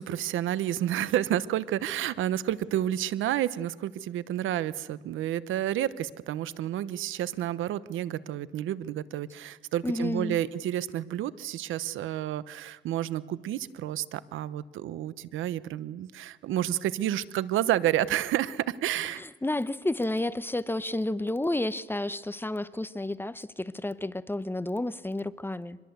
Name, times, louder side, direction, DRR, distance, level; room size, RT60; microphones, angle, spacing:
voice 1, 0.0-19.2, right 12 dB, 80° right, 1.0 m, -30 dB
voice 2, 9.8-10.4 19.4-25.8, left 1 dB, 10° left, 0.9 m, -31 dB
25.5 x 21.5 x 8.1 m
cardioid pair, 90°, 20 cm